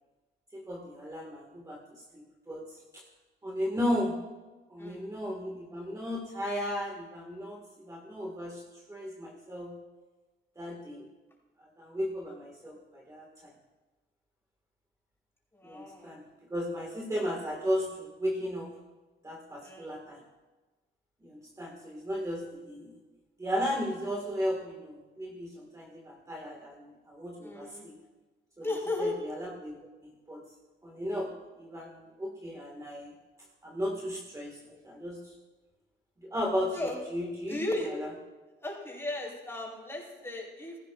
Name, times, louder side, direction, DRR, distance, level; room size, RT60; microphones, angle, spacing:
voice 1, 0.5-1.8 2.1-3.0 3.4-4.2 4.7-8.6 8.9-9.7 10.6-11.1 11.6-13.3 15.6-16.2 16.5-18.7 19.2-20.2 21.2-23.0 23.4-28.0 28.6-28.7 29.0-29.8 30.0-30.4 30.8-31.3 31.6-33.1 33.6-35.3 36.2-36.8 37.1-37.6 37.8-38.1, equal, 15° right, -1 dB, 1.9 m, -35 dB
voice 2, 15.5-16.1 19.6-20.0 27.4-27.9 28.6-29.2 36.7-37.0 37.5-37.9 38.6-40.8, left 2 dB, 10° left, -4 dB, 5.0 m, -35 dB
16.5 x 15.0 x 2.5 m, 1.2 s
cardioid pair, 90°, 20 cm